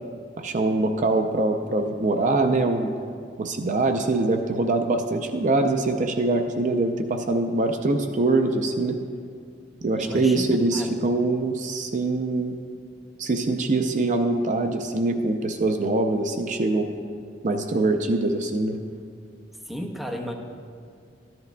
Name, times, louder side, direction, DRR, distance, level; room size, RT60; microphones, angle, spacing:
voice 1, 0.4-2.9 3.4-9.0 9.8-12.5 13.2-16.9 17.4-18.8, right 2 dB, 45° right, 6 dB, 0.5 m, -23 dB
voice 2, 10.0-10.9 19.7-20.3, equal, ahead, 1 dB, 0.7 m, -33 dB
14.0 x 10.5 x 2.2 m, 2.3 s
head